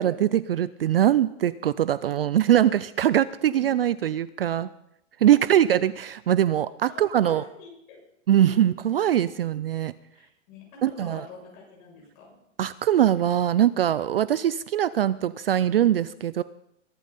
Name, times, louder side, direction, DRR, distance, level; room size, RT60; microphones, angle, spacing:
voice 1, 0.0-4.7 5.2-7.4 8.3-9.9 10.8-11.2 12.6-16.4, right 11 dB, 50° right, 17 dB, 0.5 m, -22 dB
voice 2, 5.3-5.6 6.9-8.0 8.4-8.8 9.4-9.5 10.1-12.3, left 4 dB, 30° left, -2 dB, 7.2 m, -46 dB
22.5 x 12.0 x 4.1 m, 0.80 s
hypercardioid pair, 170°, 38 cm